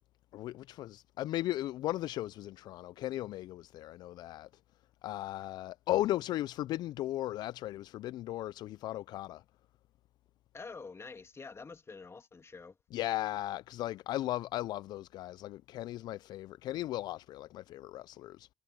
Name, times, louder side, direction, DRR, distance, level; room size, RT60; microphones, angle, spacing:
voice 1, 0.3-4.5 5.0-9.4 12.9-18.5, left 15 dB, 70° left, 0.4 m, -36 dB
voice 2, 10.5-12.8, left 4 dB, 35° left, 2.9 m, -47 dB
hypercardioid pair, 50°, 7 cm